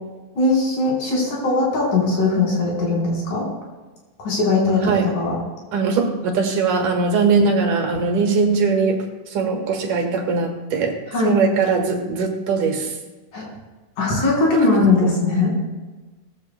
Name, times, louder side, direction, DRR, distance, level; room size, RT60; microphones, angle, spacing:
voice 1, 0.4-3.5 4.2-5.3 11.1-11.4 13.3-13.5 14.0-15.5, left 3 dB, 80° left, -3 dB, 5.7 m, -20 dB
voice 2, 5.7-9.0 9.3-11.0 11.2-12.9, right 4 dB, 80° right, 3 dB, 3.2 m, -20 dB
19.0 x 14.5 x 2.2 m, 1.3 s
omnidirectional pair, 3.5 m